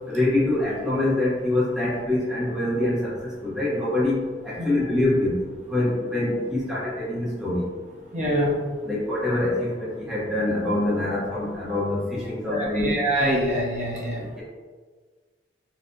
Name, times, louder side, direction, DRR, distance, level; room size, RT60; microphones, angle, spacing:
voice 1, 0.1-5.4 5.7-7.7 8.8-12.9 14.3-14.4, left 1 dB, 5° right, -8 dB, 0.7 m, -25 dB
voice 2, 8.1-8.6 12.5-14.2, equal, 40° right, -5 dB, 0.7 m, -24 dB
4.3 x 2.1 x 2.5 m, 1.5 s
head